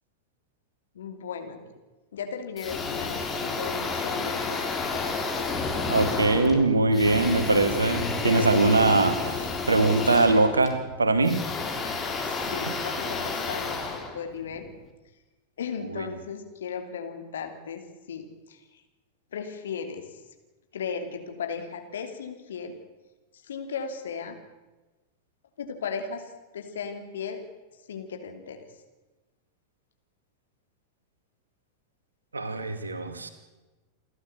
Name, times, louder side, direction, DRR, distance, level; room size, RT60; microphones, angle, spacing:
voice 1, 0.9-1.6 2.1-5.3 5.8-6.1 12.2-14.7 15.6-18.6 19.3-20.0 20.7-22.8 23.4-24.4 25.6-27.4 27.9-28.6, left 6 dB, 65° left, 6 dB, 2.9 m, -36 dB
sound 1, 2.6-14.8, left 4 dB, 20° left, 3.5 m, -31 dB
voice 2, 5.9-11.4 15.9-16.0 32.3-33.3, right 2 dB, 75° right, 9 dB, 2.3 m, -22 dB
28.5 x 12.0 x 8.4 m, 1.1 s
figure-of-eight pair, 90°, 0 cm